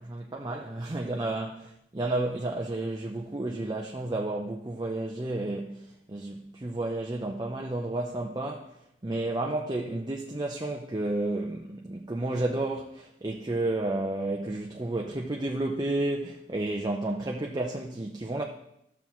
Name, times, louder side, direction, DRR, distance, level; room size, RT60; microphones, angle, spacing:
voice 1, 0.0-8.7 9.0-18.4, right 2 dB, 25° right, 0.6 m, -31 dB
13.5 x 7.0 x 3.0 m
head